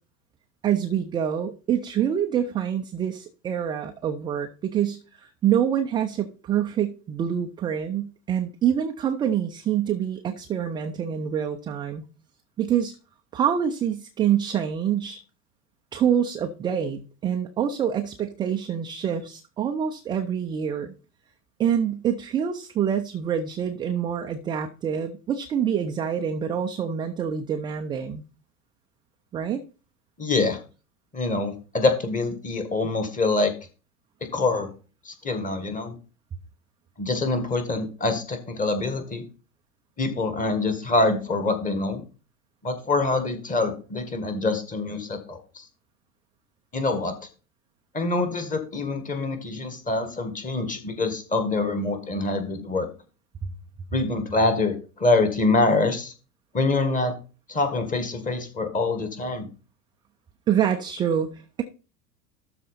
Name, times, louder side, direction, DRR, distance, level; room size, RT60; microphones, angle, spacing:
voice 1, 0.6-12.0 12.6-13.0 13.3-15.2 15.9-20.9 21.6-28.2 29.3-29.6 53.4-53.5 60.5-61.6, right 9 dB, 10° right, 5 dB, 0.4 m, -26 dB
voice 2, 30.2-30.6 31.1-33.5 34.3-34.7 35.1-36.0 37.0-39.2 40.0-42.0 42.6-45.7 46.7-47.2 47.9-52.9 53.9-56.1 56.5-57.1 57.5-59.5, left 3 dB, 15° left, 8 dB, 1.7 m, -25 dB
12.5 x 4.2 x 4.2 m, 0.34 s
figure-of-eight pair, 80°, 45 cm